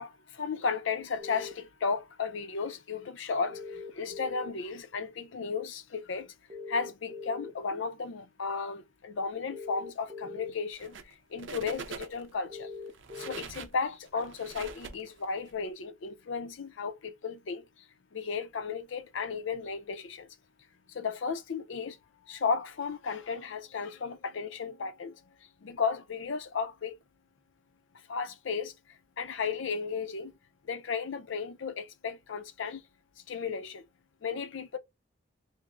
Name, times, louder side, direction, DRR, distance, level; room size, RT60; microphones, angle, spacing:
voice 1, 0.0-6.3 6.7-12.7 13.1-17.9 18.1-20.3 20.9-22.0 22.3-25.3 25.6-26.9 28.1-30.4 30.6-32.8 33.3-33.8 34.2-34.8, left 5 dB, 70° left, 0.5 m, -34 dB
sound 1, 1.2-1.5 3.5-4.5 6.5-7.5 9.5-10.5 12.5-13.4, left 4 dB, 25° right, 0.6 m, -41 dB
sound 2, 10.7-11.1 11.4-12.3 12.9-15.5, right 5 dB, 65° right, 0.6 m, -44 dB
5.3 x 2.0 x 2.4 m
head